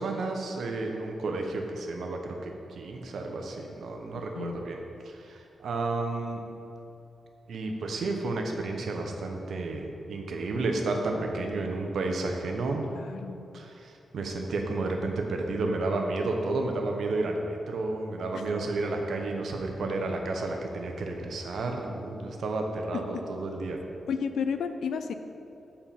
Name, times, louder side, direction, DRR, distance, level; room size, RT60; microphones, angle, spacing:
voice 1, 0.0-6.4 7.5-12.9 13.5-23.8, right 2 dB, 70° right, 2 dB, 0.8 m, -31 dB
voice 2, 12.9-13.6 18.3-18.4 22.9-23.0 24.1-25.1, left 6 dB, 90° left, 9 dB, 0.4 m, -32 dB
7.1 x 4.4 x 5.7 m, 2.9 s
wide cardioid pair, 155°, 0 cm